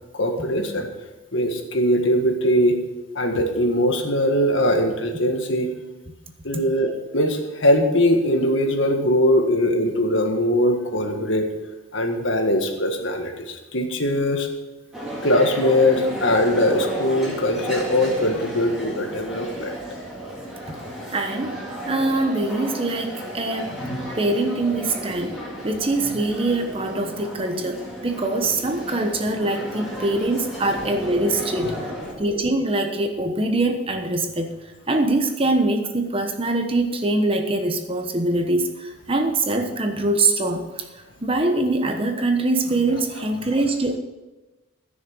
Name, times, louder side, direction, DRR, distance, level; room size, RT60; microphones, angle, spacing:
voice 1, 0.1-0.9 1.3-2.8 3.1-5.7 6.4-11.5 11.9-14.5 15.2-19.7, left 1 dB, 70° left, 3 dB, 1.7 m, -21 dB
sound 1, 14.9-32.1, equal, 5° right, 2.7 m, -33 dB
voice 2, 21.1-23.7 24.2-25.4 25.6-31.9 32.2-34.5 34.9-40.9 41.2-44.0, right 2 dB, 25° right, 5 dB, 1.1 m, -23 dB
14.5 x 6.4 x 6.4 m, 1.1 s
head